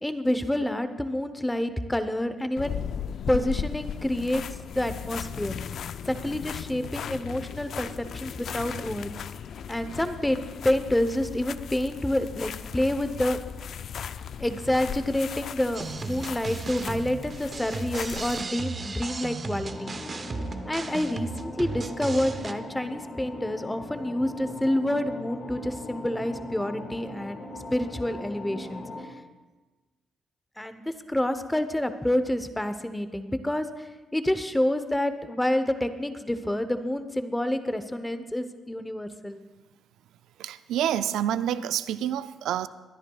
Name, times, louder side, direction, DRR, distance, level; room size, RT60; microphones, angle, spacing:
voice 1, 0.0-2.8 3.3-4.4 4.7-5.6 6.1-9.1 9.7-10.4 10.6-13.4 14.4-19.9 20.7-28.8 30.6-33.7 34.1-39.4, left 1 dB, 10° left, 10 dB, 0.8 m, -28 dB
sound 1, 2.6-18.4, left 8 dB, 60° left, 0.3 m, -37 dB
sound 2, 15.7-22.5, right 4 dB, 35° right, 0.7 m, -35 dB
sound 3, 19.7-29.0, left 2 dB, 40° left, 1.8 m, -40 dB
voice 2, 40.4-42.7, right 10 dB, 80° right, 14 dB, 0.4 m, -28 dB
23.0 x 10.5 x 2.3 m, 1.2 s
cardioid pair, 90°, 0 cm